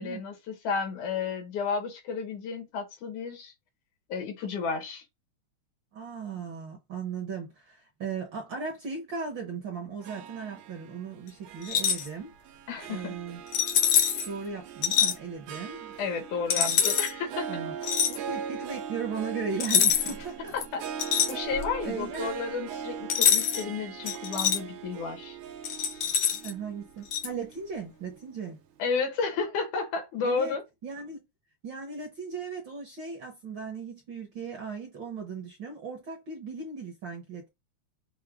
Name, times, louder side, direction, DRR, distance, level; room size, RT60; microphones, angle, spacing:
voice 1, 0.0-3.5 4.1-5.0 12.7-13.2 16.0-17.6 20.5-20.8 21.3-25.4 28.8-30.6, left 5 dB, 80° left, 2.7 m, -32 dB
voice 2, 5.9-12.3 12.9-13.4 14.2-15.9 16.6-16.8 17.5-17.8 18.0-20.5 21.8-22.3 26.3-28.6 30.2-30.5 30.8-31.2 31.6-37.5, right 5 dB, 55° right, 1.4 m, -37 dB
Harp, 10.0-28.5, right 8 dB, 85° right, 2.2 m, -40 dB
sound 1, 11.6-12.1 13.5-14.3 14.8-15.1 16.5-17.1 17.8-18.2 19.6-20.2 20.6-21.8 23.1-23.6 24.1-24.6 25.6-26.5 27.1-27.3, left 8 dB, 65° left, 1.5 m, -25 dB
6.4 x 2.2 x 3.5 m
omnidirectional pair, 3.4 m